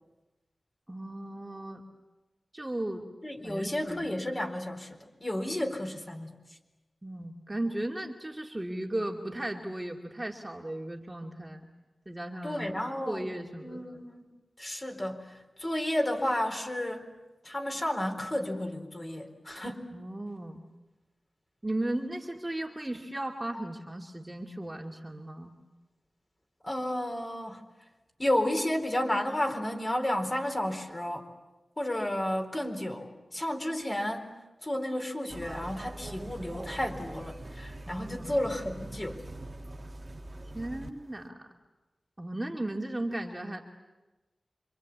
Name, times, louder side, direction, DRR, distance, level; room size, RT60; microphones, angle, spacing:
voice 1, 0.9-1.8 2.5-3.1 3.4-4.1 7.0-11.7 12.1-12.7 13.1-14.1 19.9-20.6 21.6-25.5 37.8-38.4 40.5-41.5 42.2-43.6, right 1 dB, 15° right, 0 dB, 2.4 m, -36 dB
voice 2, 3.2-6.3 12.4-13.3 13.6-14.3 14.6-17.1 17.4-19.9 26.6-27.6 28.2-31.2 31.8-34.3 34.6-39.2, left 1 dB, 25° left, 3 dB, 4.3 m, -32 dB
sound 1, 35.3-40.9 41.2-41.3, right 1 dB, 35° right, 2.0 m, -43 dB
27.0 x 26.0 x 8.6 m, 1.1 s
wide cardioid pair, 105°, 0 cm